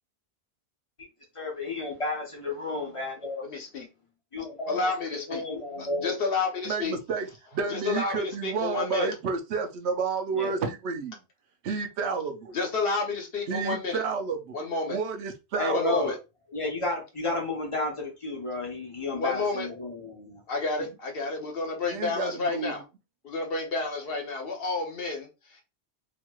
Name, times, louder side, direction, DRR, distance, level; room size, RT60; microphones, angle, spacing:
voice 1, 1.3-3.4 4.3-6.1 10.3-10.6 15.6-16.1 16.5-20.4, left 3 dB, 30° left, 0.9 m, -32 dB
voice 2, 3.4-3.9 4.7-5.4 5.8-6.9 7.7-9.1 12.5-14.0 14.5-15.0 15.7-16.2 19.2-19.7 20.5-22.8 23.2-25.6, left 3 dB, 60° left, 1.0 m, -30 dB
voice 3, 6.7-7.3 7.5-11.2 11.6-12.6 13.5-14.6 14.9-15.9 21.9-22.7, right 5 dB, 85° right, 0.9 m, -30 dB
2.9 x 2.8 x 2.2 m
omnidirectional pair, 1.1 m